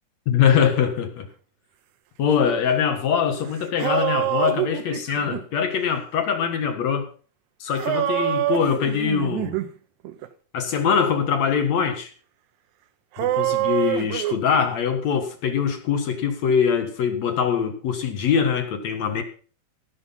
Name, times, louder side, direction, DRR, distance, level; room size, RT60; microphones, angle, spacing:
voice 1, 0.3-1.3 2.2-7.1 7.6-9.6 10.5-12.1 13.2-19.2, left 7 dB, 55° left, 6 dB, 2.4 m, -23 dB
sound 1, 3.3-3.4 3.6-5.4 7.7-9.7 10.0-10.3 13.2-14.4, right 14 dB, 80° right, 1.7 m, -25 dB
17.5 x 6.3 x 5.6 m, 0.40 s
omnidirectional pair, 4.4 m